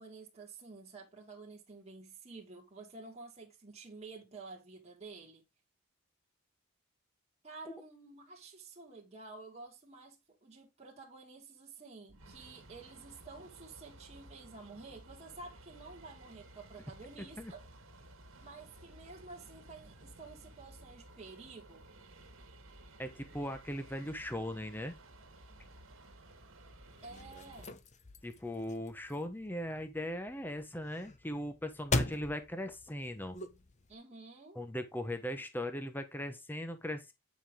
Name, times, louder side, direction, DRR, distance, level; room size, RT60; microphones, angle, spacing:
voice 1, 0.0-5.4 7.4-17.7 18.4-21.8 27.0-27.8 33.9-34.6, right 3 dB, 30° right, 2.0 m, -51 dB
sound 1, 12.1-27.7, right 1 dB, 65° right, 2.1 m, -56 dB
voice 2, 23.0-24.9 28.2-33.4 34.5-37.1, left 1 dB, 10° left, 1.0 m, -39 dB
sound 2, 26.9-33.9, left 2 dB, 35° left, 0.9 m, -40 dB
9.8 x 5.4 x 3.7 m
head